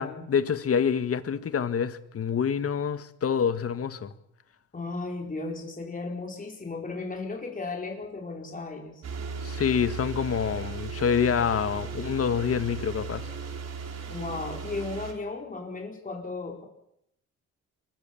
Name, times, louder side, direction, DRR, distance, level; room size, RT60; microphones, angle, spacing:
voice 1, 0.0-4.1 9.4-13.3, left 7 dB, 50° left, 1.8 m, -27 dB
voice 2, 4.7-9.0 14.1-16.6, left 3 dB, 25° left, 4.8 m, -35 dB
sound 1, 9.0-15.1, right 5 dB, 60° right, 4.3 m, -36 dB
24.0 x 21.0 x 7.3 m
cardioid pair, 90°, 30 cm